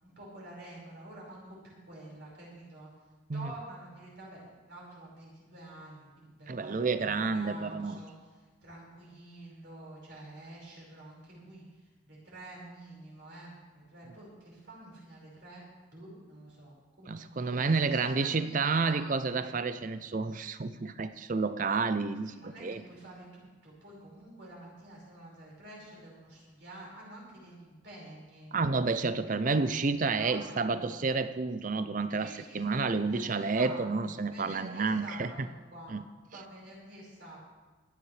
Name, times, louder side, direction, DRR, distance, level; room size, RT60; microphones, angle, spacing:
voice 1, 0.0-2.9 3.3-15.6 15.9-19.5 22.2-28.5 29.4-29.7 30.2-31.3 32.2-36.0 36.3-37.4, right 1 dB, 60° right, -4 dB, 5.1 m, -49 dB
voice 2, 6.5-8.0 17.1-22.8 28.5-35.3 35.9-36.0, right 4 dB, 40° right, 11 dB, 0.5 m, -30 dB
24.5 x 10.0 x 3.3 m, 1.3 s
head